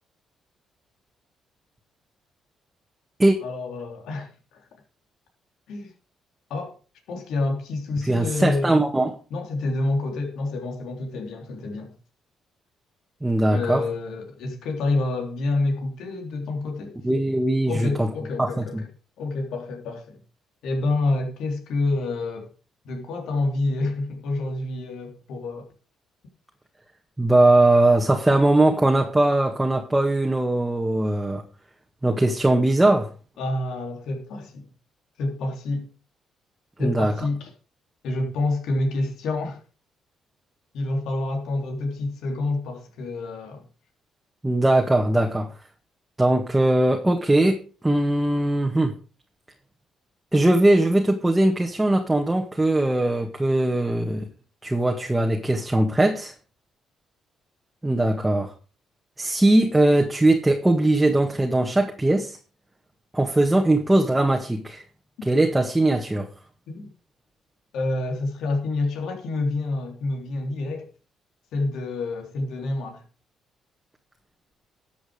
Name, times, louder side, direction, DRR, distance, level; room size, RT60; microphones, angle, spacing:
voice 1, 3.4-4.6 5.7-5.9 6.5-6.7 7.1-8.8 9.3-11.9 13.5-17.0 17.7-18.8 19.2-20.2 20.6-22.5 22.8-25.7 33.4-34.7 35.2-35.9 36.8-37.5 38.0-39.6 40.7-43.6 66.7-66.9 67.7-70.9 71.5-73.0, left 2 dB, 80° left, 3.5 m, -28 dB
voice 2, 8.1-9.1 13.2-13.8 17.0-18.1 18.4-18.8 27.2-31.4 32.0-33.1 36.8-37.1 44.4-45.5 46.2-48.9 50.3-54.3 54.6-56.3 57.8-58.5 59.2-62.4 63.1-64.8 65.2-66.3, right 1 dB, 10° right, 1.8 m, -20 dB
13.0 x 7.5 x 5.0 m
cardioid pair, 90°, 0 cm